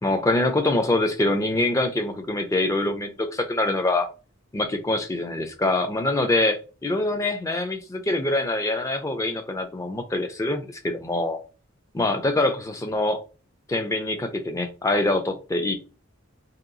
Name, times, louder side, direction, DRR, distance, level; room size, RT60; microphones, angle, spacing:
voice 1, 0.0-4.1 4.5-11.4 11.9-13.2 13.7-15.8, left 2 dB, 15° left, 5 dB, 0.3 m, -24 dB
2.8 x 2.3 x 2.5 m, 0.34 s
head